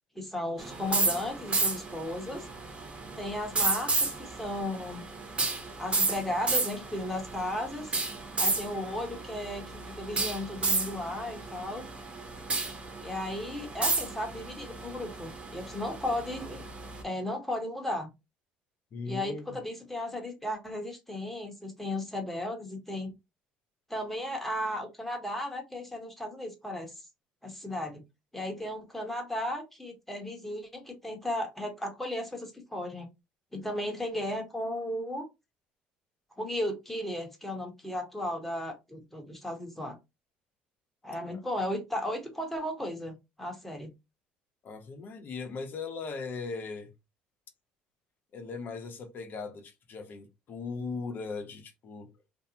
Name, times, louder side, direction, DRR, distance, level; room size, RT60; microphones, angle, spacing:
voice 1, 0.1-2.5 3.2-3.9 4.2-5.1 5.8-7.9 8.4-11.9 13.0-16.6 17.0-18.1 19.1-23.1 23.9-27.0 27.4-28.0 28.3-33.1 33.5-35.2 36.4-40.0 41.0-43.9, left 1 dB, 5° left, 1.0 m, -35 dB
sound 1, 0.6-17.0, right 3 dB, 30° right, 0.9 m, -33 dB
voice 2, 18.9-19.6 41.3-41.4 44.6-46.9 48.3-52.1, left 4 dB, 50° left, 0.7 m, -39 dB
2.6 x 2.0 x 2.6 m
supercardioid pair, 75°, 4 cm